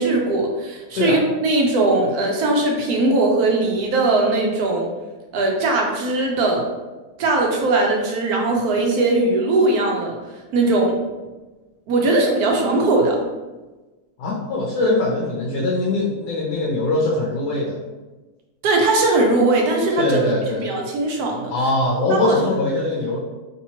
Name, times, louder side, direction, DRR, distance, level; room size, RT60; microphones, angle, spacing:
voice 1, 0.0-4.9 5.3-6.7 7.2-10.2 10.5-11.0 11.9-13.2 18.6-20.2 20.6-21.5 22.1-22.4, right 2 dB, 75° right, 0 dB, 1.2 m, -19 dB
voice 2, 14.2-17.8 20.0-20.7 21.5-23.2, left 2 dB, 85° left, -5 dB, 1.3 m, -22 dB
3.3 x 2.8 x 2.8 m, 1.2 s
omnidirectional pair, 1.7 m